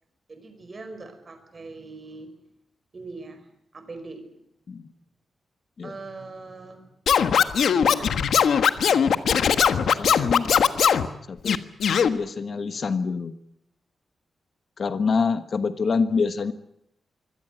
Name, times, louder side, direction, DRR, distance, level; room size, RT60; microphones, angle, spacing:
voice 1, 0.3-2.3 2.9-4.2 5.8-6.8 7.5-8.4 8.7-9.8, right 3 dB, 35° right, 8 dB, 5.0 m, -42 dB
Scratching (performance technique), 7.1-11.1 11.4-12.1, left 7 dB, 75° left, 1.3 m, -20 dB
voice 2, 9.9-10.5 11.3-11.6 12.0-13.3 14.8-16.5, left 5 dB, 50° left, 11 dB, 1.2 m, -26 dB
24.5 x 17.0 x 9.1 m, 0.78 s
wide cardioid pair, 140°, 0 cm